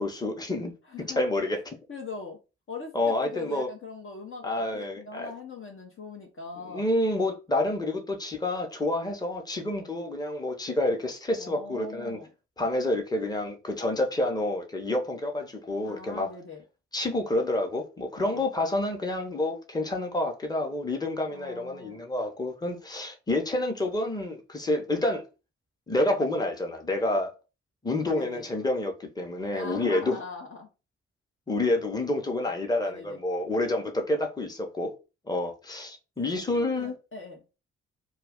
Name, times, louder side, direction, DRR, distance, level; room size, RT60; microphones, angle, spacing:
voice 1, 0.0-0.7 1.0-1.8 2.9-3.7 4.4-5.3 6.7-12.2 12.6-16.3 16.9-25.2 25.9-27.3 27.8-30.2 31.5-34.9 35.3-36.9, left 1 dB, 10° left, 0.8 m, -28 dB
voice 2, 0.9-1.2 1.9-2.4 2.7-6.9 11.4-12.3 15.9-16.6 18.2-18.5 21.3-22.0 28.1-28.4 29.5-30.7 32.8-33.2 36.4-37.4, left 4 dB, 40° left, 0.7 m, -41 dB
2.3 x 2.3 x 3.5 m
hypercardioid pair, 40°, 32 cm